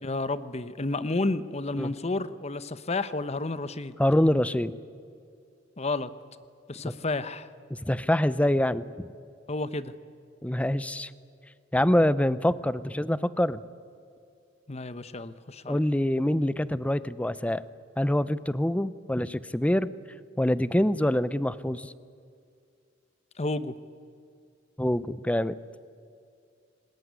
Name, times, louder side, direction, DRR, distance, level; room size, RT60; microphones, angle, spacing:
voice 1, 0.0-3.9 5.8-6.1 6.7-7.5 9.5-9.9 14.7-15.8 23.4-23.7, left 2 dB, 35° left, 13 dB, 1.0 m, -31 dB
voice 2, 4.0-4.7 6.8-6.9 7.7-9.1 10.4-11.1 11.7-13.6 15.7-17.6 18.0-19.9 20.4-21.9 24.8-25.6, left 1 dB, 5° left, 16 dB, 0.6 m, -25 dB
25.5 x 20.5 x 9.7 m, 2.4 s
head